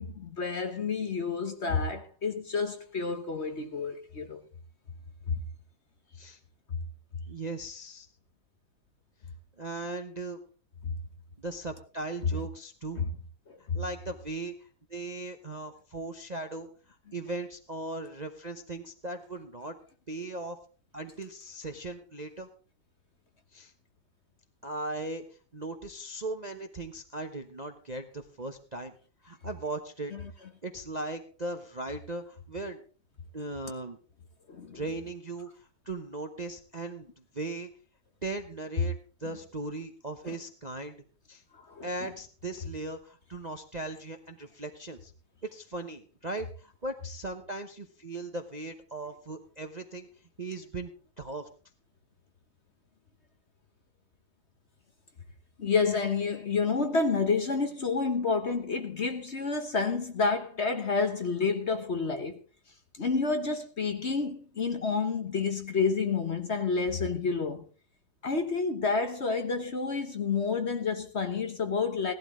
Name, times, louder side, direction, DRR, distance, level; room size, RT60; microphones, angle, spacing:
voice 1, 0.0-4.4 5.3-5.4 13.0-13.1 13.5-13.8 30.1-30.2 34.5-34.8 40.2-40.4 41.5-41.9 55.6-62.4 63.0-67.6 68.2-72.1, left 4 dB, 40° left, 1.2 m, -29 dB
voice 2, 7.3-8.1 9.6-10.4 11.4-13.0 13.7-16.7 17.1-19.8 20.1-20.6 20.9-22.5 23.5-23.7 24.6-25.2 25.5-28.9 29.2-30.1 30.6-32.8 33.3-34.0 34.7-37.1 37.3-37.7 38.2-41.4 41.8-45.1 45.4-50.1 50.4-50.9 51.2-51.5, right 2 dB, 35° right, 0.8 m, -38 dB
17.0 x 12.0 x 3.8 m
omnidirectional pair, 2.0 m